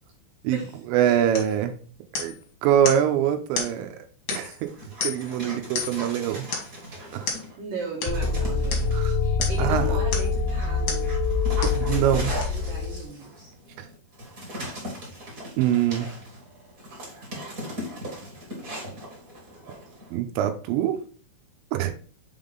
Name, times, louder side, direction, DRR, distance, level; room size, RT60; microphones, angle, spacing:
voice 1, 0.9-1.8 2.2-2.4 2.6-4.0 4.3-4.7 5.0-6.5 7.1-7.4 8.9-9.1 9.6-9.9 11.6-12.3 13.8-13.9 15.6-16.1 20.1-21.0 21.7-21.9, right 10 dB, 85° right, 7 dB, 3.0 m, -24 dB
sound 1, 1.3-1.6 2.1-2.4 2.8-3.1 3.5-3.8 4.3-4.6 5.0-5.3 5.7-6.1 6.5-6.8 7.3-7.5 8.0-8.2 8.7-8.9 9.4-9.7 10.1-10.4 10.9-11.1 11.6-11.8 12.4-12.5, left 5 dB, 65° left, 1.5 m, -31 dB
Dog, 4.7-7.6 8.1-9.2 9.8-20.1, equal, 35° right, 1.3 m, -39 dB
voice 2, 7.6-8.9 9.2-11.0 11.9-13.5, right 4 dB, 60° right, -4 dB, 2.5 m, -36 dB
sound 2, 8.1-13.0, left 4 dB, 85° left, 2.6 m, -25 dB
7.0 x 3.7 x 3.8 m, 0.39 s
omnidirectional pair, 5.2 m